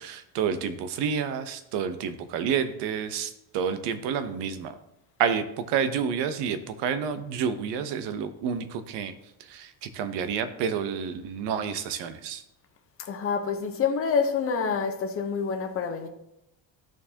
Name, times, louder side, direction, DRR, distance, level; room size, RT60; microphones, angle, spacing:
voice 1, 0.0-4.7 5.2-9.1 9.4-12.4, right 7 dB, 80° right, 0.9 m, -29 dB
voice 2, 13.0-16.1, left 6 dB, 30° left, 0.9 m, -27 dB
13.5 x 4.6 x 2.8 m
cardioid pair, 155°, 41 cm